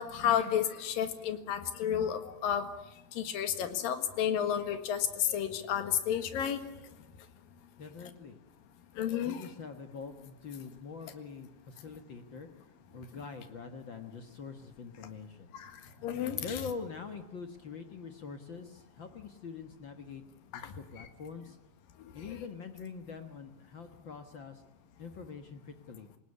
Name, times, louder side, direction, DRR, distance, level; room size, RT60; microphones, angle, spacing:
voice 1, 0.0-2.7 3.2-6.6 9.0-9.5 15.6-15.7 16.0-16.4 20.5-20.6 21.0-21.1, left 9 dB, 75° left, 9 dB, 3.4 m, -31 dB
voice 2, 7.8-8.4 9.2-12.5 12.9-15.5 16.4-20.2 20.5-21.6 22.1-24.6 25.0-26.1, left 5 dB, 55° left, 7 dB, 1.3 m, -44 dB
27.5 x 18.0 x 9.8 m, 0.89 s
omnidirectional pair, 4.1 m